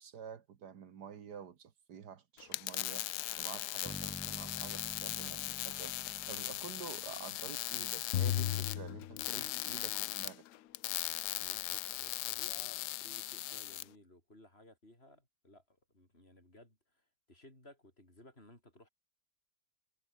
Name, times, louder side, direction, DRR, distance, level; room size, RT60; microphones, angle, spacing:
voice 1, 0.0-6.0 6.2-10.4, right 7 dB, 70° right, 2.0 m, -49 dB
sound 1, 2.4-13.8, left 16 dB, 80° left, 1.1 m, -39 dB
sound 2, 3.8-7.8, equal, 5° left, 2.4 m, -50 dB
sound 3, 8.1-9.9, left 11 dB, 60° left, 0.9 m, -35 dB
voice 2, 11.3-18.9, left 1 dB, 35° left, 7.1 m, -59 dB
omnidirectional pair, 1.8 m